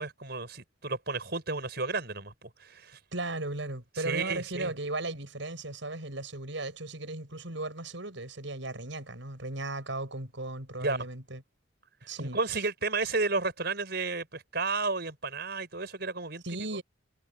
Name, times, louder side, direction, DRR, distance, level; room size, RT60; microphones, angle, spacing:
voice 1, 0.0-3.0 4.0-4.7 10.8-11.1 12.2-16.4, right 3 dB, 55° right, 6.2 m, -32 dB
voice 2, 3.1-11.4 12.1-12.4 16.4-16.8, right 2 dB, 75° right, 6.3 m, -36 dB
head